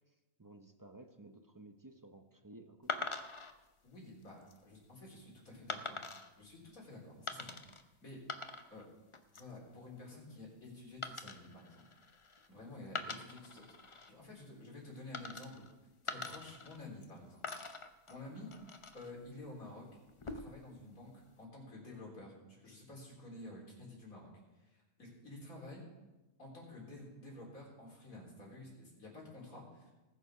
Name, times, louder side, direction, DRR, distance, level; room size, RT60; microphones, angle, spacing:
voice 1, 0.4-3.1, right 2 dB, 25° right, 6 dB, 0.4 m, -55 dB
sound 1, 2.9-3.5 4.2-4.6 5.7-6.3 7.3-7.8 8.1-8.9 9.1-9.6 11.0-12.5 12.9-14.1 15.1-15.7 16.1-17.1 17.4-19.1 20.1-20.7, left 3 dB, 35° left, 0.5 m, -44 dB
voice 2, 3.8-6.0 6.4-8.2 8.7-8.8 9.3-11.8 12.5-15.6 16.0-17.6 18.1-19.9 20.2-25.9 26.4-29.9, left 2 dB, 75° left, -3 dB, 4.1 m, -51 dB
19.0 x 6.8 x 4.9 m, 1.1 s
omnidirectional pair, 1.5 m